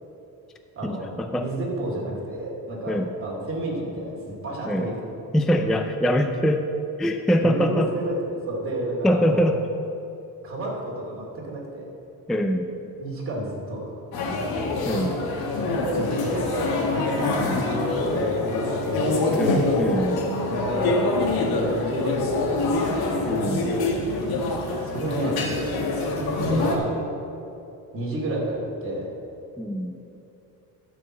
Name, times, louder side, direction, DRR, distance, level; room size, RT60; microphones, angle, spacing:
voice 1, 0.8-1.5 2.9-3.1 4.6-4.9 5.3-6.6 7.0-7.9 9.0-9.6 12.3-12.7 14.9-15.2 17.4-17.6 19.3-20.3 23.3-23.8 29.6-29.9, equal, ahead, 5 dB, 0.3 m, -24 dB
voice 2, 1.4-5.1 7.4-9.5 10.4-11.9 13.0-14.0 15.8-19.2 20.5-20.9 21.5-22.6 24.8-25.4 26.0-26.9 27.9-29.1, right 1 dB, 35° right, -3 dB, 2.6 m, -31 dB
sound 1, 14.1-26.8, left 2 dB, 80° left, 1.7 m, -25 dB
12.5 x 4.8 x 7.3 m, 2.8 s
cardioid pair, 130°, 36 cm